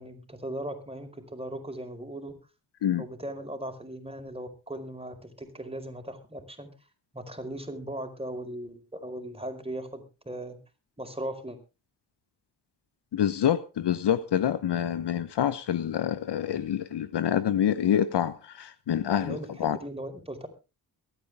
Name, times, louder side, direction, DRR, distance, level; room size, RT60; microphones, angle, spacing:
voice 1, 0.0-2.3 3.0-6.7 7.1-10.6 11.0-11.6 19.2-20.5, right 1 dB, 15° right, 6 dB, 4.7 m, -38 dB
voice 2, 13.1-19.8, left 10 dB, 65° left, 15 dB, 1.0 m, -27 dB
23.0 x 9.3 x 3.5 m, 0.31 s
supercardioid pair, 40°, 44 cm